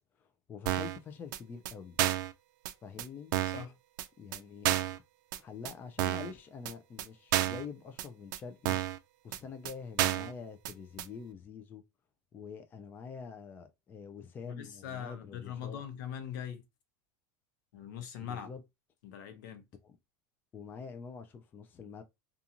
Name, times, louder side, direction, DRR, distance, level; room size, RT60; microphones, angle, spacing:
voice 1, 0.2-2.0 2.8-3.3 4.2-5.0 5.3-8.8 9.2-11.8 12.3-15.8 18.2-18.6 19.8-20.0 20.5-22.0, left 6 dB, 20° left, 0.3 m, -46 dB
sound 1, 0.7-1.0 1.3-1.4 1.7-1.8 2.0-2.3 2.7-2.8 3.0-3.1 3.3-3.6 4.0-4.1 4.3-4.4 4.6-5.0 5.3-5.4 5.6-5.7 6.0-6.3 6.7-6.8 7.0-7.1 7.3-7.6 8.0-8.1 8.3-8.4 8.7-9.0 9.3-9.4 9.6-9.7 10.0-10.3 10.6-10.7 11.0-11.1, right 13 dB, 80° right, 0.4 m, -30 dB
voice 2, 3.5-3.8 14.4-16.6 17.7-18.5 19.0-19.6, left 9 dB, 80° left, 0.7 m, -41 dB
2.5 x 2.3 x 2.8 m
supercardioid pair, 150°, 10 cm